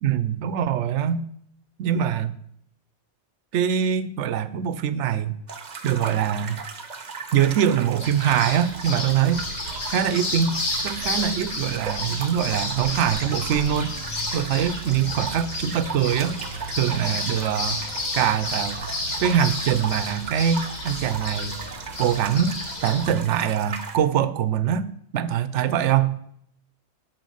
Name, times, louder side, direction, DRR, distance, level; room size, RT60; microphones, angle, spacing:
voice 1, 0.0-1.2 1.8-2.3 3.5-5.3 5.8-6.6 7.3-9.4 9.9-13.9 14.3-16.4 16.8-17.8 18.1-18.8 19.2-21.6 22.0-22.6 22.8-26.2, right 9 dB, 80° right, 0.9 m, -23 dB
sound 1, 5.5-24.0, right 5 dB, 45° right, 0.8 m, -37 dB
sound 2, 8.0-23.1, left 1 dB, 55° left, 1.9 m, -32 dB
9.2 x 4.7 x 6.3 m
omnidirectional pair, 1.2 m